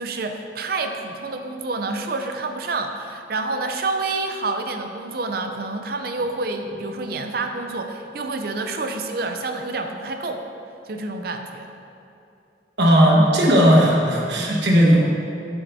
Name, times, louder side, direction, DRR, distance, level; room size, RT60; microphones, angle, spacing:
voice 1, 0.0-10.4 10.9-11.7, right 3 dB, 55° right, 5 dB, 0.5 m, -28 dB
voice 2, 12.8-15.1, equal, 75° right, -2 dB, 1.3 m, -16 dB
8.8 x 7.4 x 2.7 m, 2.7 s
head